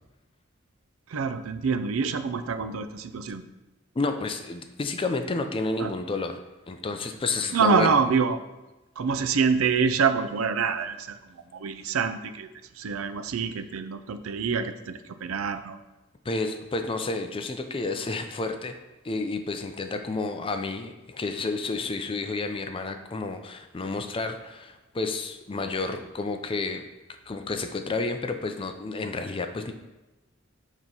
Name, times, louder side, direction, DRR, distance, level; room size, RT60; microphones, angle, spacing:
voice 1, 1.1-3.4 5.8-5.9 7.5-8.4 9.0-11.2 11.5-12.5 12.8-15.8, right 5 dB, 85° right, 11 dB, 0.4 m, -26 dB
voice 2, 4.0-6.4 6.7-7.9 16.3-18.7 19.0-26.8 27.3-29.7, left 3 dB, 25° left, 7 dB, 0.4 m, -30 dB
6.4 x 3.0 x 5.4 m, 1.0 s
head